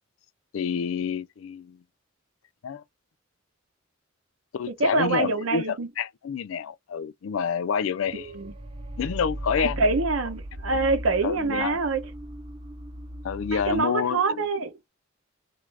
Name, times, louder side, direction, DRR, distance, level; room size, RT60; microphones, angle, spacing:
voice 1, 0.5-1.8 2.6-2.8 4.5-8.3 9.0-9.8 11.2-11.8 13.2-14.4, left 6 dB, 80° left, 0.4 m, -28 dB
voice 2, 4.7-5.9 8.1-8.5 9.6-12.0 13.5-14.7, right 3 dB, 90° right, 0.8 m, -25 dB
sound 1, 8.0-13.8, right 1 dB, 30° right, 0.5 m, -37 dB
3.1 x 2.5 x 3.2 m
head